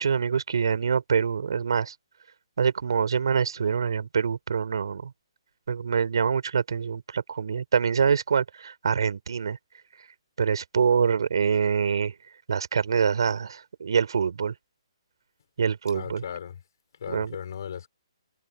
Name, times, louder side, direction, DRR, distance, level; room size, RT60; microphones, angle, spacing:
voice 1, 0.0-1.9 2.6-5.1 5.7-9.6 10.4-12.1 12.5-14.5 15.6-16.2 17.1-17.4, right 6 dB, 55° right, 4.1 m, -25 dB
voice 2, 15.9-16.5 17.0-17.9, left 8 dB, 45° left, 4.8 m, -36 dB
hypercardioid pair, 175°, 3 cm